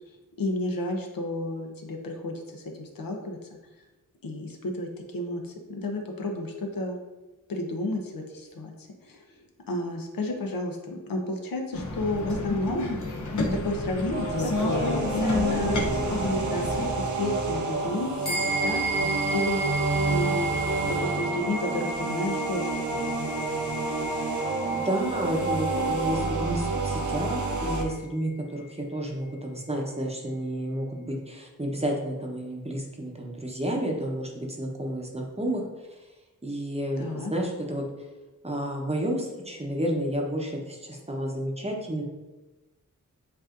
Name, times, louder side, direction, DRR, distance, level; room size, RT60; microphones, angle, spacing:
voice 1, 0.4-3.4 4.2-7.0 7.5-8.7 9.0-9.2 9.7-12.9 13.3-16.6 17.0-19.6 20.0-20.5 20.8-23.4 37.0-37.3, left 2 dB, 80° left, 2 dB, 0.8 m, -32 dB
sound 1, 11.7-16.9, left 2 dB, 60° left, 0.9 m, -30 dB
sound 2, 14.1-27.8, right 3 dB, 60° right, 0.8 m, -29 dB
sound 3, 18.2-28.0, right 2 dB, 30° left, 1.0 m, -35 dB
voice 2, 24.7-35.6 35.9-36.0 36.4-37.8 38.4-42.0, right 1 dB, 20° right, 0 dB, 0.8 m, -31 dB
7.8 x 2.7 x 2.5 m, 1.1 s
wide cardioid pair, 70°, 34 cm